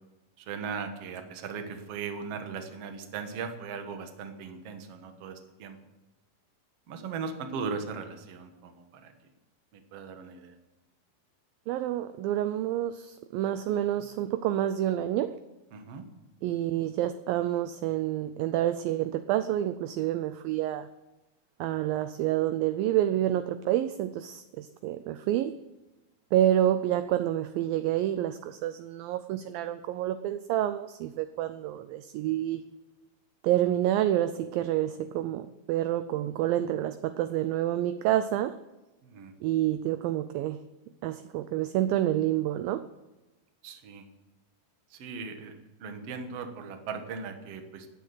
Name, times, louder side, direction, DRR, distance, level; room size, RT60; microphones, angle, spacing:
voice 1, 0.4-5.8 6.9-9.1 9.7-10.6 15.7-16.0 39.0-39.3 43.6-44.1 44.9-45.6 45.8-47.9, right 5 dB, 55° right, 6 dB, 1.9 m, -38 dB
voice 2, 11.7-15.4 16.4-20.9 21.6-25.6 26.3-32.6 33.4-38.5 39.4-40.6 41.0-42.8, right 12 dB, 80° right, 11 dB, 2.1 m, -28 dB
18.5 x 7.4 x 7.8 m, 1.1 s
omnidirectional pair, 4.6 m